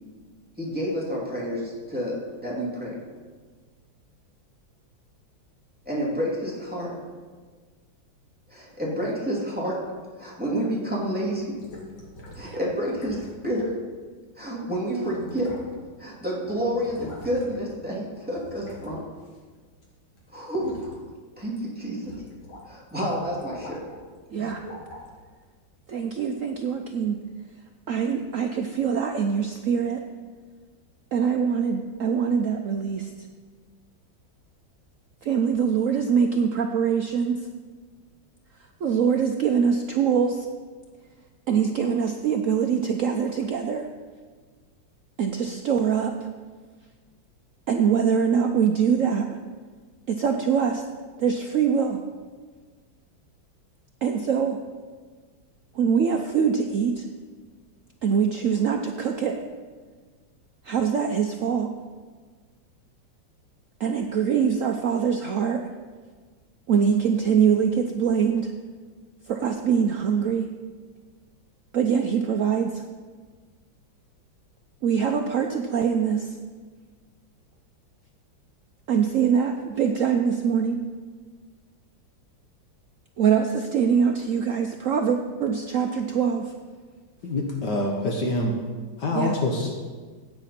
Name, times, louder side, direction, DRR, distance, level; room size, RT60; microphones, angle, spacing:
voice 1, 0.6-3.0 5.9-7.0 8.5-9.8 10.2-11.6 12.3-13.8 14.4-15.5 16.0-19.0 20.3-21.0 21.4-22.2 22.6-23.9 24.4-24.5, equal, 5° right, -5 dB, 2.5 m, -29 dB
sound 1, 11.6-12.5 12.9-13.3 13.6-13.7 14.6-14.7 15.0-16.0 16.2-17.7 18.3-19.9 20.2-20.9 21.4-21.6 22.0-22.6 22.9-24.0 24.4-25.1 25.8-25.9, left 1 dB, 85° left, 3.0 m, -44 dB
voice 2, 24.3-24.6 25.9-27.2 27.9-30.0 31.1-33.1 35.2-37.4 38.8-40.5 41.5-43.9 45.2-46.3 47.7-49.3 50.1-50.8 51.2-52.0 54.0-54.6 55.7-57.0 58.0-59.4 60.6-61.7 63.8-65.6 66.7-68.5 69.3-70.5 71.7-72.8 74.8-76.4 78.9-80.8 83.2-86.5 89.1-89.4, right 7 dB, 85° right, 4 dB, 0.7 m, -23 dB
voice 3, 87.2-88.6 89.0-89.7, left 2 dB, 60° left, 1 dB, 1.7 m, -25 dB
15.0 x 9.0 x 4.3 m, 1.5 s
omnidirectional pair, 2.2 m